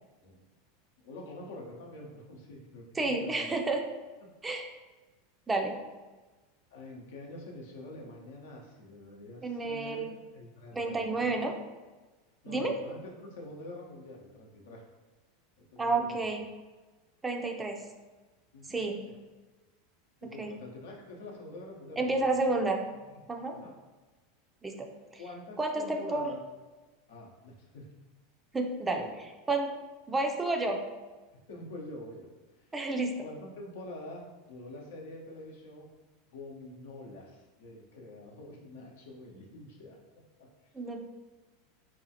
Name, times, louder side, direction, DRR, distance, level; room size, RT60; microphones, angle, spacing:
voice 1, 1.0-3.5 6.7-10.1 10.3-11.3 12.4-14.8 15.6-16.4 18.5-18.8 19.1-19.2 20.2-22.5 22.8-23.2 23.5-23.7 25.2-26.4 27.1-27.9 28.9-29.1 31.3-32.3 32.6-32.7 33.2-35.9 36.3-40.5, left 2 dB, 75° left, -1 dB, 0.7 m, -46 dB
voice 2, 3.0-3.8 4.4-4.7 5.5-5.7 9.4-10.1 10.7-11.5 12.5-12.7 15.8-16.4 17.2-17.8 18.7-19.0 20.4-20.5 22.0-22.8 23.3-23.6 24.6-24.9 25.6-26.3 28.5-29.0 29.5-29.7 30.1-30.8 32.7-33.1 40.7-41.0, right 3 dB, 15° right, 3 dB, 0.5 m, -30 dB
4.1 x 2.3 x 2.8 m, 1.2 s
hypercardioid pair, 90°, 0 cm